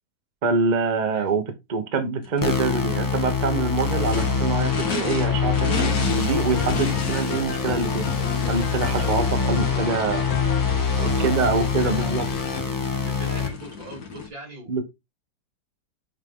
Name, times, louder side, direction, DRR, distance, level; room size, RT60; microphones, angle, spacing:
voice 1, 0.4-1.4 1.7-8.1 8.5-10.2 11.0-12.2 14.7-14.8, right 4 dB, 30° right, 0.9 m, -25 dB
Race car auto racing / Idling / Accelerating revving vroom, 2.2-14.3, left 5 dB, 60° left, 1.9 m, -35 dB
sound 1, 2.4-13.5, left 5 dB, 20° left, 0.6 m, -25 dB
sound 2, 6.3-12.6, left 4 dB, 75° left, 1.7 m, -34 dB
voice 2, 10.9-12.1 13.0-14.8, right 2 dB, 85° right, 4.1 m, -39 dB
7.2 x 3.7 x 3.6 m
omnidirectional pair, 2.0 m